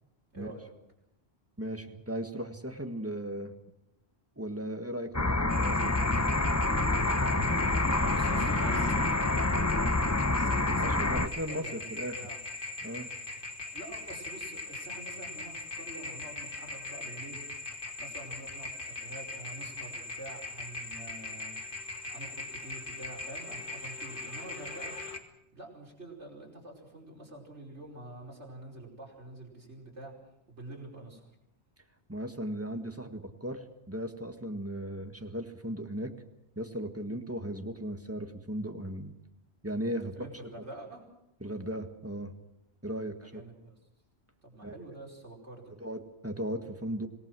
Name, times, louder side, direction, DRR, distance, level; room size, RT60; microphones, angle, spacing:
voice 1, 0.3-0.7 7.9-11.2 11.5-11.7 12.2-12.4 13.3-13.4 13.7-17.4 17.7-24.9 25.5-30.1 30.5-31.3 40.0-41.0 43.2-43.7 44.4-45.7, right 2 dB, 85° right, -1 dB, 5.4 m, -47 dB
voice 2, 1.6-3.5 4.4-6.1 10.8-12.2 12.8-13.1 32.1-36.1 36.5-39.1 39.6-40.3 41.4-42.3 42.8-43.4 44.6-44.9 45.8-47.1, equal, 10° right, 6 dB, 1.7 m, -37 dB
sound 1, 5.1-11.3, left 2 dB, 15° left, 0.7 m, -27 dB
sound 2, 5.5-25.2, left 2 dB, 50° left, 2.2 m, -40 dB
26.5 x 18.5 x 6.3 m, 0.85 s
omnidirectional pair, 1.1 m